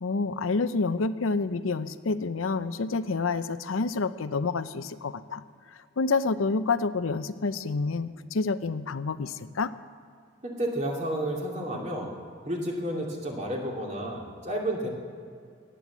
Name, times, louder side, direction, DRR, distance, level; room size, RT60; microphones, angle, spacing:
voice 1, 0.0-5.4 6.0-9.7, left 4 dB, 85° left, 12 dB, 0.6 m, -28 dB
voice 2, 10.4-12.1 12.4-14.9, right 1 dB, 35° right, -1 dB, 2.6 m, -31 dB
17.5 x 9.3 x 7.3 m, 2.3 s
head